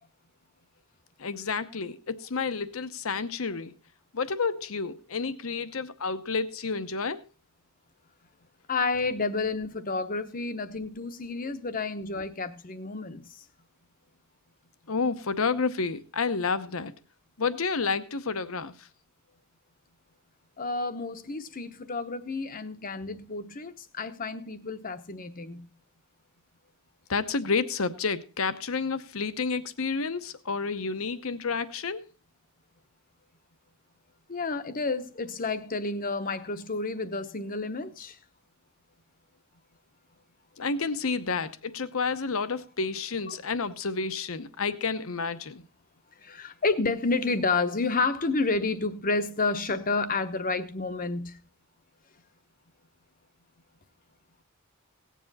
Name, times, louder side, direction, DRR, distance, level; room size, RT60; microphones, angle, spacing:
voice 1, 1.2-3.7 4.1-7.2 14.9-16.9 17.4-18.7 27.1-32.1 40.6-45.7, left 4 dB, 70° left, 0.9 m, -30 dB
voice 2, 8.7-13.4 20.6-25.7 34.3-38.2 43.3-43.4 46.2-51.4, left 3 dB, 40° left, 0.9 m, -30 dB
18.0 x 7.5 x 4.1 m
head